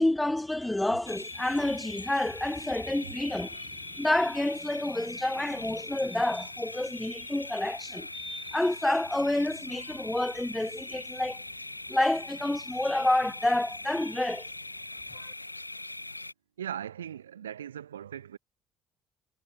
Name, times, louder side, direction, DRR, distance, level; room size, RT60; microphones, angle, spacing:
voice 1, 0.0-11.4 11.9-14.5 15.1-15.3, left 1 dB, 10° left, 0.6 m, -29 dB
sound 1, 1.1-16.3, left 2 dB, 90° left, 0.5 m, -41 dB
voice 2, 16.6-18.4, right 9 dB, 80° right, 2.8 m, -39 dB
figure-of-eight pair, 50°, 0 cm